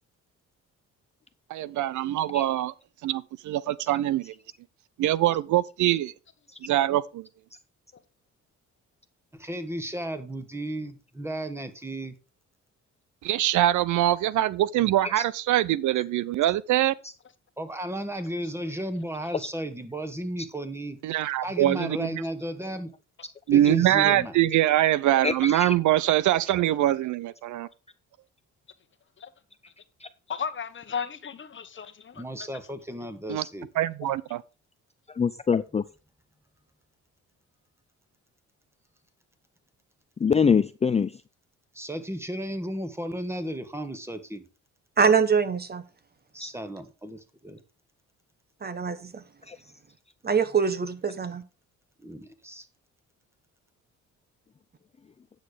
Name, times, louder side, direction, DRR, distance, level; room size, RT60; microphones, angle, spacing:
voice 1, 1.5-2.7 3.0-4.3 5.0-6.1 6.6-7.3 13.2-16.9 21.0-22.2 23.5-27.7 33.3-33.4 33.8-34.4, right 13 dB, 75° right, 0.6 m, -23 dB
voice 2, 9.4-12.1 17.6-21.0 21.4-22.9 23.5-24.3 32.1-33.7 41.7-44.4 46.3-47.6 52.0-52.6, right 1 dB, 10° right, 1.6 m, -34 dB
voice 3, 25.2-25.7 35.2-35.8 40.2-41.1 46.4-46.5 49.5-49.6, left 6 dB, 20° left, 0.5 m, -24 dB
voice 4, 30.3-32.5, left 6 dB, 40° left, 1.1 m, -35 dB
voice 5, 45.0-45.8 48.6-49.2 50.2-51.4, right 6 dB, 30° right, 1.2 m, -24 dB
9.5 x 6.4 x 5.0 m
cardioid pair, 90°, 30 cm